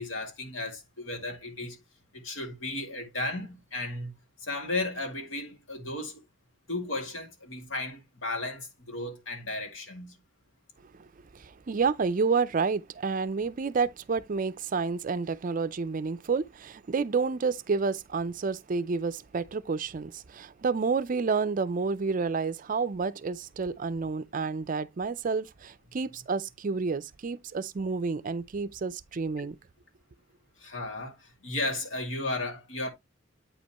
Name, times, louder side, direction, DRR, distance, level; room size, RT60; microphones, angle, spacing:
voice 1, 0.0-1.8 2.1-4.1 4.4-6.2 6.7-10.2 30.6-32.9, left 2 dB, 70° left, 2.2 m, -34 dB
voice 2, 11.3-29.6, right 4 dB, 40° right, 0.4 m, -29 dB
8.7 x 5.3 x 2.9 m
head